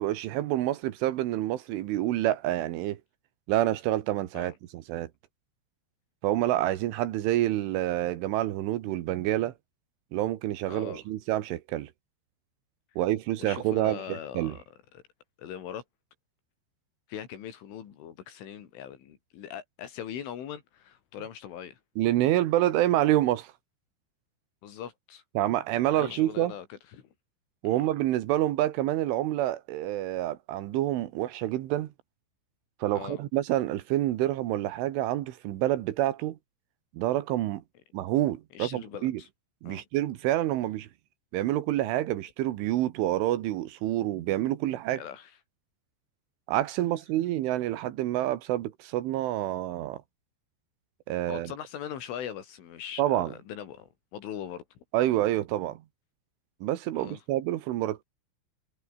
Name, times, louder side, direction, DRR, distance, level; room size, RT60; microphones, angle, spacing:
voice 1, 0.0-3.0 3.5-5.1 6.2-9.5 10.1-11.9 13.0-14.6 22.0-23.5 25.4-26.5 27.6-31.9 32.8-36.4 37.0-37.6 37.9-39.2 39.6-40.9 41.3-45.0 46.5-50.0 51.1-51.5 53.0-53.3 54.9-55.8 56.6-58.0, right 14 dB, 85° right, 3.9 m, -27 dB
voice 2, 10.7-11.0 13.4-14.6 14.9-15.0 15.4-15.8 17.1-21.8 24.6-25.2 25.9-27.0 27.7-27.8 32.9-33.2 38.5-39.3 39.7-39.8 45.0-45.3 51.3-54.6 57.0-57.2, left 9 dB, 85° left, 5.4 m, -41 dB
omnidirectional pair, 5.5 m